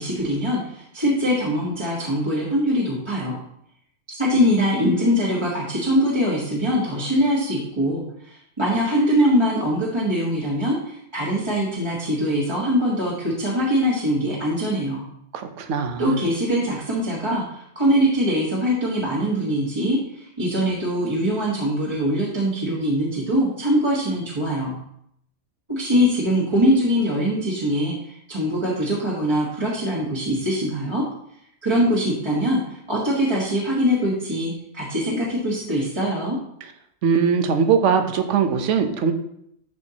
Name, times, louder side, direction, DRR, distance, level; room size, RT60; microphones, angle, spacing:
voice 1, 0.0-3.4 4.1-15.1 16.0-24.7 25.7-31.0 31.6-36.4, equal, 20° right, -6 dB, 1.3 m, -22 dB
voice 2, 15.3-16.2 37.0-39.1, right 6 dB, 70° right, 7 dB, 1.1 m, -21 dB
11.0 x 4.5 x 2.8 m, 0.73 s
omnidirectional pair, 1.3 m